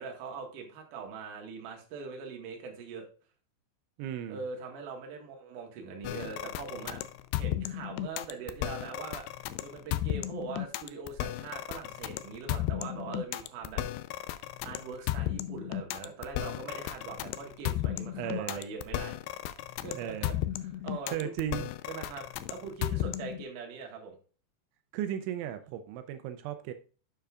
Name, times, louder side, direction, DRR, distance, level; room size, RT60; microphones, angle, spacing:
voice 1, 0.0-3.1 4.3-7.0 7.4-9.3 9.6-13.8 14.6-19.2 19.8-20.4 20.6-21.3 21.9-24.2, right 5 dB, 55° right, 1 dB, 2.5 m, -42 dB
voice 2, 4.0-4.4 18.2-18.6 20.0-20.4 21.1-21.7 24.9-26.7, right 10 dB, 85° right, 8 dB, 3.0 m, -35 dB
sound 1, 6.0-23.4, left 13 dB, 90° left, 2.4 m, -34 dB
10.0 x 6.7 x 2.4 m, 0.38 s
omnidirectional pair, 5.4 m